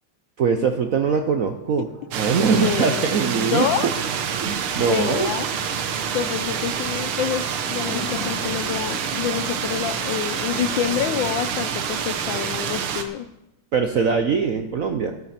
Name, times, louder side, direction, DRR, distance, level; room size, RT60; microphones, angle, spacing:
voice 1, 0.4-1.9 2.1-3.7 4.4-5.3 13.7-15.1, right 5 dB, 65° right, 6 dB, 0.8 m, -22 dB
sound 1, 2.1-13.0, right 7 dB, 90° right, 1.8 m, -27 dB
voice 2, 2.6-3.9 4.8-5.5 6.1-13.3, left 10 dB, 75° left, 13 dB, 1.2 m, -27 dB
sound 2, 5.6-13.0, left 5 dB, 50° left, 2.7 m, -41 dB
12.5 x 12.5 x 4.3 m, 0.92 s
omnidirectional pair, 2.3 m